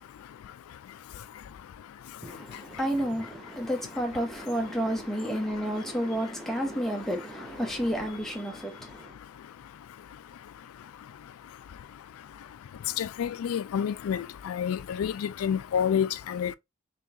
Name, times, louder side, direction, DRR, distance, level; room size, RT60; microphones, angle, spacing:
voice 1, 2.2-9.1, equal, ahead, 0.8 m, -31 dB
voice 2, 13.0-16.6, left 8 dB, 85° left, 0.3 m, -29 dB
3.7 x 3.4 x 2.7 m
head